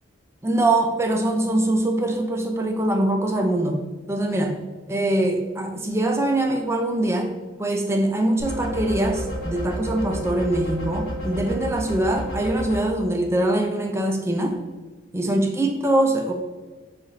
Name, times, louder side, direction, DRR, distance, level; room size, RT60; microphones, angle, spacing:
voice 1, 0.4-3.8 4.1-4.6 4.9-7.3 7.6-14.6 15.1-16.3, right 1 dB, 15° right, 3 dB, 0.4 m, -23 dB
sound 1, 8.4-12.8, equal, 50° left, 1.1 m, -31 dB
6.7 x 2.5 x 3.0 m, 1.3 s
head